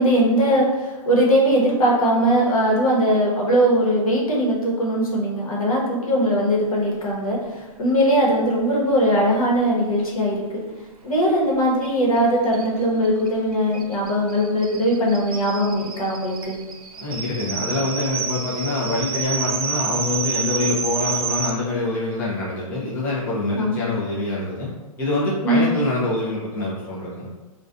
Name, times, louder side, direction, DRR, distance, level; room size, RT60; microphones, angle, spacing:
voice 1, 0.0-10.4 11.0-16.6 23.5-23.8 25.4-25.7, equal, 75° left, -3 dB, 0.9 m, -20 dB
sound 1, 11.8-11.9 12.2-12.3 12.5-21.5, right 6 dB, 90° right, 0.4 m, -29 dB
voice 2, 16.9-24.7 25.0-27.3, left 2 dB, 10° left, -7 dB, 0.4 m, -25 dB
2.4 x 2.2 x 2.4 m, 1.1 s
hypercardioid pair, 145°, 18 cm